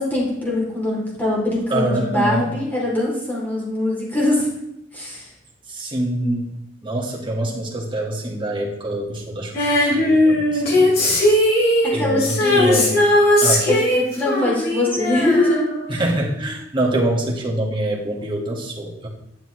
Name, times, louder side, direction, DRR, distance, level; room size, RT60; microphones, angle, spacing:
voice 1, 0.0-4.5 4.9-5.3 11.9-12.9 13.7-16.0, left 1 dB, 10° left, -5 dB, 3.0 m, -22 dB
voice 2, 1.7-2.5 5.7-11.4 11.9-13.0 13.4-13.7 15.9-19.1, right 1 dB, 25° right, -2 dB, 1.7 m, -25 dB
Female singing, 9.5-16.2 16.5-16.6, left 1 dB, 55° left, 2.7 m, -18 dB
10.5 x 6.7 x 3.2 m, 0.82 s
head